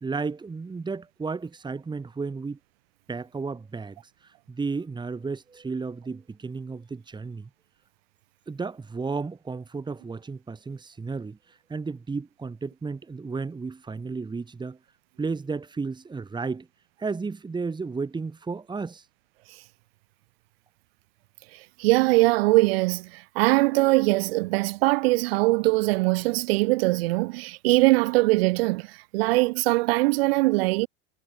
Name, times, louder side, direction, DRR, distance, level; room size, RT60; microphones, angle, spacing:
voice 1, 0.0-2.6 3.1-7.5 8.5-14.8 15.2-16.7 17.0-19.0, right 4 dB, 15° right, 3.0 m, -33 dB
voice 2, 21.8-30.9, right 22 dB, 85° right, 4.1 m, -22 dB
supercardioid pair, 130°, 29 cm